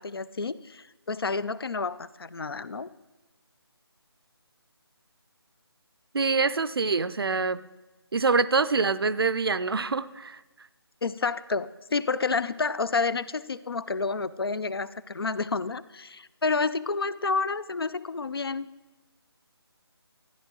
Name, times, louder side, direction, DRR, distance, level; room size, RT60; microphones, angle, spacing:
voice 1, 0.0-2.9 11.0-18.7, left 4 dB, 65° left, 17 dB, 0.5 m, -29 dB
voice 2, 6.1-7.6 8.1-10.4, right 4 dB, 60° right, 16 dB, 0.5 m, -25 dB
13.5 x 10.0 x 3.8 m, 1.1 s
figure-of-eight pair, 155°, 14 cm